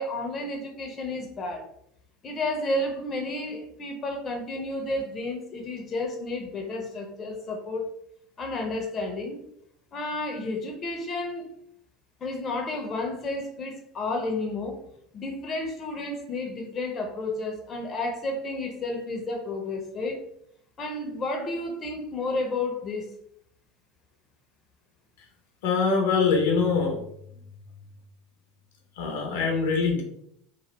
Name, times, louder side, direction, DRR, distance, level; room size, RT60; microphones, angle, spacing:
voice 1, 0.0-1.7 2.2-7.9 8.4-9.4 9.9-11.5 12.2-14.8 15.1-20.2 20.8-23.1, left 2 dB, 35° left, 3 dB, 0.7 m, -31 dB
voice 2, 25.6-27.4 28.9-30.0, left 5 dB, 70° left, 2 dB, 0.7 m, -24 dB
2.9 x 2.2 x 3.2 m, 0.71 s
hypercardioid pair, 75°, 0 cm